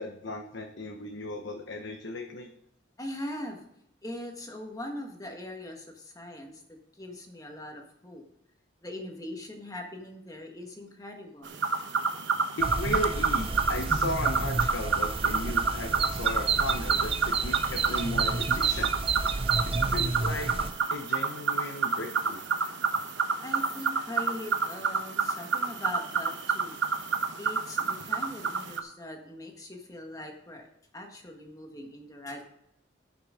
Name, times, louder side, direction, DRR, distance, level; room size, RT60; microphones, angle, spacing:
voice 1, 0.0-2.5 12.6-18.9 19.6-20.5 20.9-22.4, left 1 dB, 75° left, 3 dB, 1.0 m, -36 dB
voice 2, 3.0-3.6 4.0-8.2 8.8-11.6 23.4-26.8 27.4-30.7 30.9-32.5, left 1 dB, 20° left, 3 dB, 1.5 m, -41 dB
sound 1, 11.4-28.8, right 5 dB, 70° right, 1.0 m, -29 dB
sound 2, 12.6-20.7, right 4 dB, 30° right, 0.5 m, -31 dB
13.0 x 6.0 x 5.0 m, 0.78 s
head